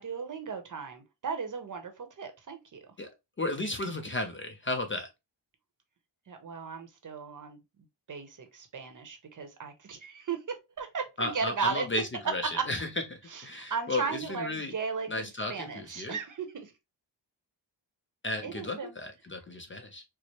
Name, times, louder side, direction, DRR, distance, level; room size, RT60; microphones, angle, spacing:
voice 1, 0.0-2.9 6.3-7.6 8.1-11.9 12.5-12.6 13.3-16.7 18.4-19.0, right 5 dB, 45° right, 0.8 m, -36 dB
voice 2, 3.4-5.1 11.2-14.7 15.1-16.2 18.2-20.0, left 2 dB, 30° left, 0.5 m, -34 dB
4.4 x 2.0 x 2.8 m
wide cardioid pair, 105°, 45 cm